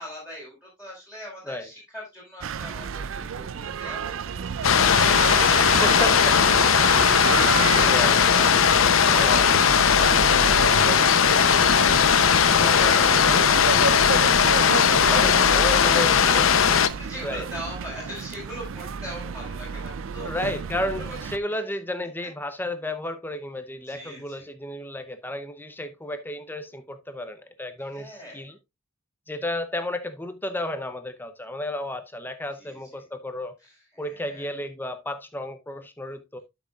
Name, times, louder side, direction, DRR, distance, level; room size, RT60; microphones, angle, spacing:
voice 1, 0.0-5.7 6.2-12.2 12.6-20.3 21.0-21.2 21.5-21.6 23.9-24.5 27.8-28.5 32.6-32.8 33.6-34.5, equal, 5° right, 4.7 m, -40 dB
sound 1, 2.4-21.4, right 6 dB, 70° right, 0.4 m, -31 dB
sound 2, 4.6-16.9, left 7 dB, 80° left, 0.7 m, -18 dB
voice 2, 5.6-6.2 7.9-8.2 9.1-9.5 12.6-12.9 15.1-16.5 17.2-17.5 20.2-28.6 29.3-33.6 34.0-36.4, left 1 dB, 10° left, 0.7 m, -32 dB
12.0 x 6.1 x 2.4 m
head